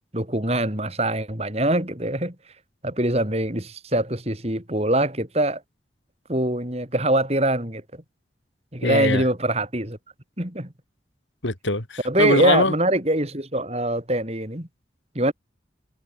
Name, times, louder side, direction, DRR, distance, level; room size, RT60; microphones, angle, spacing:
voice 1, 0.1-2.4 2.8-5.6 6.3-8.0 8.7-10.0 10.4-10.7 12.0-14.7 15.2-15.3, right 1 dB, 35° right, 3.9 m, -23 dB
voice 2, 8.8-9.2 11.4-12.7, left 2 dB, 80° left, 3.7 m, -22 dB
head